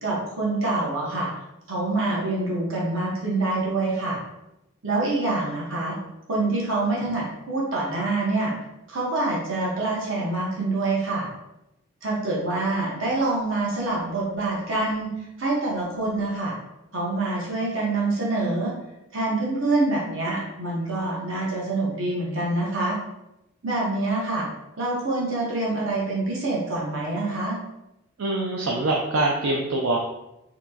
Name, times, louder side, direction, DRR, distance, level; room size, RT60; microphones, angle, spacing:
voice 1, 0.0-1.3 1.7-4.2 4.8-6.0 6.3-8.5 8.9-11.3 12.0-15.1 15.4-16.5 16.9-18.7 19.1-23.0 23.6-24.5 24.8-27.6, right 2 dB, 70° right, -4 dB, 1.3 m, -26 dB
voice 2, 28.2-30.0, right 2 dB, 85° right, -2 dB, 0.5 m, -24 dB
4.1 x 3.0 x 2.8 m, 0.89 s
head